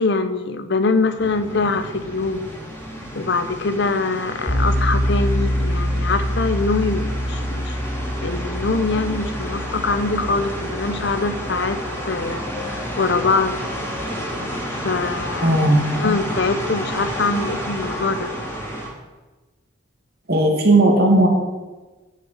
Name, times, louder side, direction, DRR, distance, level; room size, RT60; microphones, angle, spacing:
voice 1, 0.0-2.5 3.1-7.8 8.2-13.6 14.7-15.6 15.9-18.3, left 3 dB, 60° left, 11 dB, 0.8 m, -23 dB
sound 1, 1.2-18.9, equal, 15° left, 2.8 m, -31 dB
sound 2, 4.5-13.3, equal, 5° right, 3.2 m, -26 dB
voice 2, 15.4-15.8 20.3-21.3, right 1 dB, 55° right, 2 dB, 2.3 m, -15 dB
9.5 x 6.7 x 8.1 m, 1.2 s
head